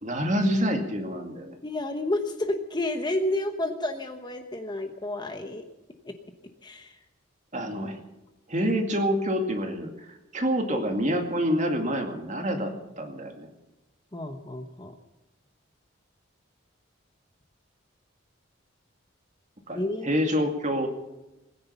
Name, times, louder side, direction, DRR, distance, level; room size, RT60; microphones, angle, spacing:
voice 1, 0.0-1.6 7.5-8.0 8.5-13.5 19.7-20.9, equal, 35° right, 4 dB, 2.3 m, -27 dB
voice 2, 1.6-5.7 6.0-6.1 6.6-6.9 10.7-10.8 14.1-14.9 19.7-20.1, left 1 dB, 20° left, 6 dB, 1.0 m, -30 dB
20.5 x 10.0 x 6.9 m, 0.98 s
head